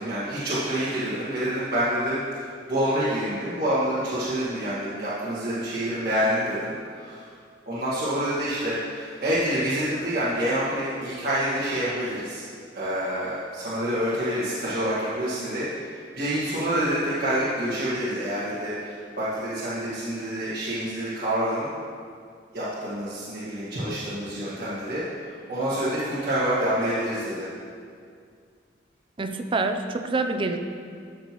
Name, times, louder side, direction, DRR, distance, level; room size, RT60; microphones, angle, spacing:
voice 1, 0.0-2.4 2.7-7.3 7.7-12.4 12.7-15.7 16.2-21.7 22.5-27.5, equal, 55° right, -12 dB, 1.8 m, -27 dB
voice 2, 29.2-30.6, right 3 dB, 30° right, 6 dB, 0.5 m, -26 dB
14.0 x 6.0 x 3.0 m, 2.2 s
head